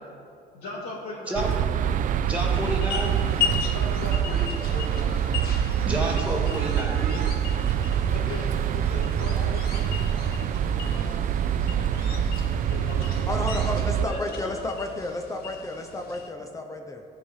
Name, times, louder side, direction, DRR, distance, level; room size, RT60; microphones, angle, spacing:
voice 1, 0.5-1.4 3.6-5.3 8.1-13.1 14.0-15.0, left 2 dB, 85° left, -10 dB, 2.5 m, -39 dB
sound 1, 1.3-14.0, right 9 dB, 50° right, 0.4 m, -25 dB
voice 2, 2.2-3.1 5.8-7.3, right 1 dB, 10° right, -1 dB, 2.5 m, -30 dB
sound 2, 2.5-16.3, left 8 dB, 65° left, 0.9 m, -37 dB
voice 3, 13.3-17.0, left 2 dB, 20° left, 4 dB, 0.7 m, -32 dB
14.5 x 4.9 x 5.5 m, 2.5 s
cardioid pair, 110°, 17 cm